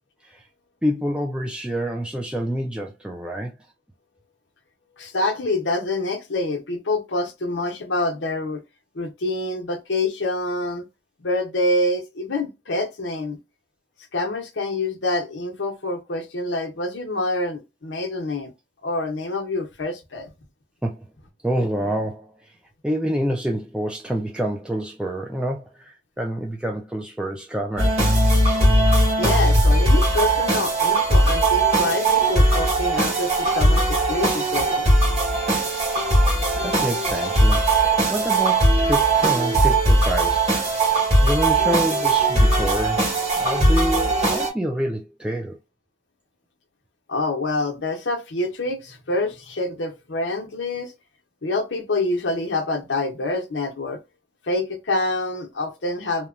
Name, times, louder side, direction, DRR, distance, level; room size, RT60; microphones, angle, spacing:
voice 1, 0.8-3.5 20.8-21.1 21.4-22.5 22.8-28.1 36.6-40.5 41.2-45.6, equal, 5° right, 0.3 m, -27 dB
voice 2, 5.0-8.6 8.9-10.9 11.2-13.4 14.1-18.5 18.8-20.3 28.8-34.9 47.1-50.9 51.4-54.0 54.5-56.3, left 2 dB, 90° left, 0.8 m, -26 dB
sound 1, 27.8-44.5, right 2 dB, 35° right, 1.5 m, -19 dB
2.9 x 2.2 x 2.4 m
head